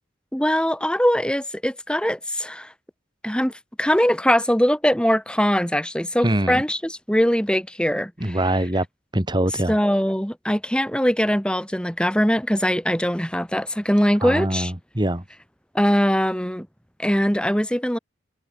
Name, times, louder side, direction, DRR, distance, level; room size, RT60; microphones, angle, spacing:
voice 1, 0.3-2.7 3.2-3.5 3.8-8.4 9.5-14.7 15.7-16.7 17.0-18.0, equal, 5° left, 4.5 m, -21 dB
voice 2, 6.2-6.6 8.2-8.9 9.1-9.7 14.2-15.2, right 1 dB, 20° right, 2.2 m, -23 dB
head